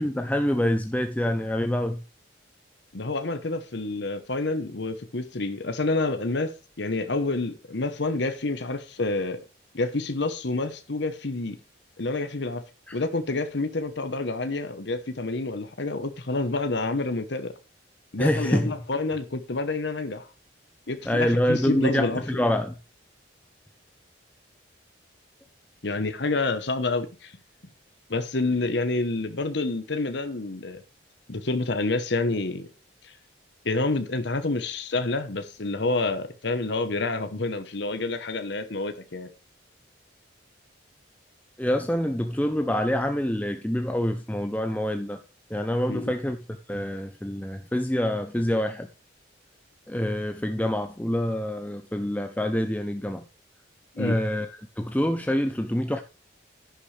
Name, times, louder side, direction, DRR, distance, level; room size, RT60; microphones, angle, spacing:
voice 1, 0.0-2.0 12.9-13.0 18.2-18.7 21.1-22.7 41.6-45.2 45.5-46.4 46.7-48.9 49.9-53.2 54.0-56.0, left 1 dB, 10° left, 0.6 m, -26 dB
voice 2, 2.9-6.5 6.8-9.4 9.7-11.6 12.0-12.6 12.9-17.5 18.1-20.3 20.9-22.2 25.8-27.3 28.1-30.8 31.3-32.7 33.0-33.1 33.6-39.3 45.9-46.1 53.9-54.2, left 2 dB, 65° left, 1.0 m, -28 dB
11.0 x 10.0 x 3.3 m
head